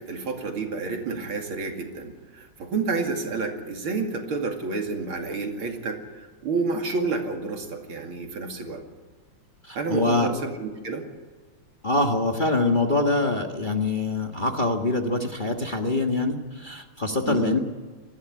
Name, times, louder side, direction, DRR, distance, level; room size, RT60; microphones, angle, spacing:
voice 1, 0.0-6.0 6.4-8.8 9.7-11.1 17.2-17.6, right 4 dB, 75° right, 3 dB, 3.2 m, -29 dB
voice 2, 9.6-10.3 11.8-17.6, left 2 dB, 25° left, 3 dB, 1.4 m, -24 dB
20.0 x 15.0 x 9.8 m, 1.4 s
omnidirectional pair, 2.3 m